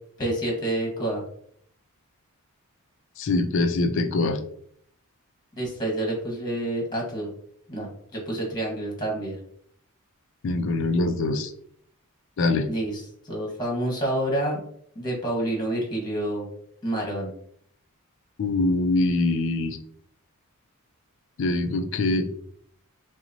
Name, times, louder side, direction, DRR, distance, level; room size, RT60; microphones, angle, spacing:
voice 1, 0.2-1.2 5.5-7.3 7.7-9.4 12.7-14.6 14.9-16.5 16.8-17.3, right 1 dB, 20° left, -2 dB, 1.2 m, -28 dB
voice 2, 3.2-4.4 10.4-11.5 12.4-12.6 18.4-19.8 21.4-22.3, left 2 dB, 60° left, 7 dB, 0.4 m, -23 dB
5.8 x 2.0 x 2.7 m, 0.64 s
head